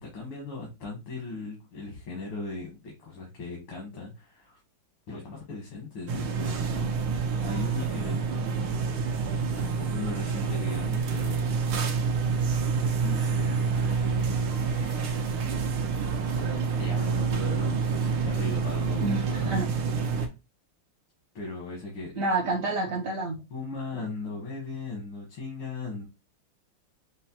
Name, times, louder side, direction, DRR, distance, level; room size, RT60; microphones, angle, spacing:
voice 1, 0.0-4.6 5.1-8.8 9.6-11.7 13.0-15.4 16.2-19.5 20.1-20.3 21.3-22.2 23.5-26.1, left 3 dB, 80° left, 2.1 m, -38 dB
sound 1, 6.1-20.3, right 5 dB, 80° right, 1.6 m, -28 dB
voice 2, 19.0-19.7 22.2-23.4, right 2 dB, 65° right, 0.8 m, -28 dB
6.2 x 2.1 x 2.8 m
omnidirectional pair, 2.3 m